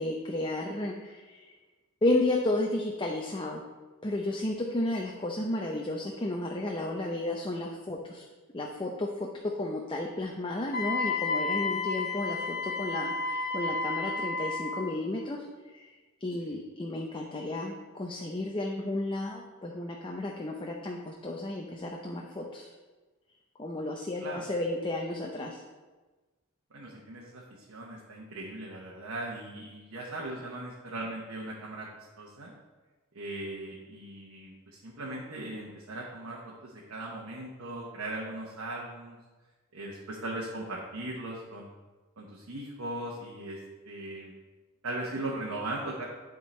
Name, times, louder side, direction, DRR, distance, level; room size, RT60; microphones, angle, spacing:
voice 1, 0.0-1.5 2.0-3.6 4.0-8.3 8.5-9.3 9.6-15.9 16.2-22.7 23.6-25.6, left 1 dB, 25° left, 0 dB, 0.6 m, -33 dB
Wind instrument woodwind instrument, 10.7-14.9, left 4 dB, 50° left, 1.0 m, -31 dB
voice 2, 26.7-32.5 33.1-39.2 39.7-41.7 42.2-43.6 43.8-44.3 44.8-46.0, right 2 dB, 80° right, -3 dB, 1.1 m, -39 dB
11.0 x 3.7 x 4.3 m, 1.3 s
head